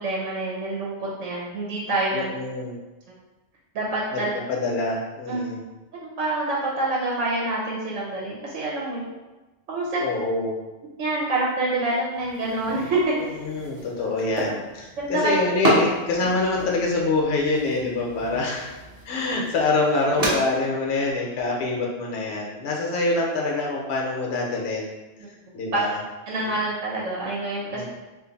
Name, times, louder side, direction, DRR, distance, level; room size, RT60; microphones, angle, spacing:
voice 1, 0.0-2.3 3.7-4.3 5.3-5.4 6.2-9.1 9.7-10.0 11.0-13.1 15.0-15.4 25.7-25.8 26.3-27.9, right 2 dB, 85° right, -5 dB, 1.0 m, -26 dB
voice 2, 2.1-2.8 4.1-4.2 4.5-5.6 10.0-10.6 13.2-18.7 19.0-24.9 25.5-26.0 26.4-26.5 27.7-27.9, left 3 dB, 65° left, -1 dB, 0.9 m, -25 dB
sound 1, 12.1-20.3, equal, 40° right, 0.7 m, -30 dB
2.5 x 2.5 x 3.9 m, 1.1 s
omnidirectional pair, 1.2 m